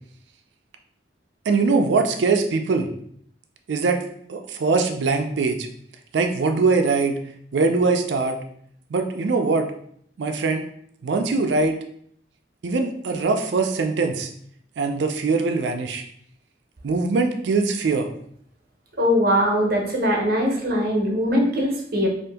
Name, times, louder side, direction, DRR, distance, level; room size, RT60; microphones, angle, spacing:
voice 1, 1.5-2.9 3.7-4.0 4.3-5.7 6.1-7.2 7.5-8.4 8.9-9.7 10.2-10.6 11.0-11.8 12.6-14.3 14.8-16.0 16.8-18.1, right 4 dB, 80° right, 5 dB, 0.4 m, -22 dB
voice 2, 19.0-22.1, equal, 55° right, 0 dB, 0.8 m, -21 dB
2.7 x 2.5 x 3.4 m, 0.66 s
head